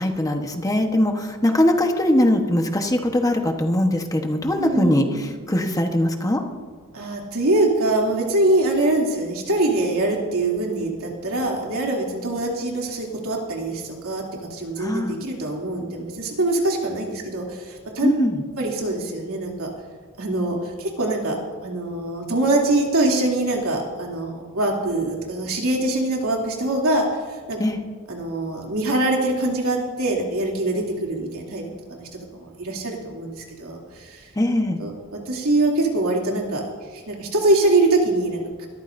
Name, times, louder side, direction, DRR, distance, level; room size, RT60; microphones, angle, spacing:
voice 1, 0.0-6.4 14.8-15.2 18.0-18.4 27.6-27.8 34.4-34.8, left 1 dB, 15° left, 4 dB, 1.1 m, -21 dB
voice 2, 4.6-5.3 6.9-14.2 14.5-18.1 18.6-19.7 20.2-27.1 27.5-27.6 28.1-31.6 31.9-32.0 32.3-33.3 33.6-34.2 34.8-38.7, right 2 dB, 80° right, -2 dB, 2.8 m, -23 dB
23.0 x 13.5 x 2.6 m, 1.5 s
head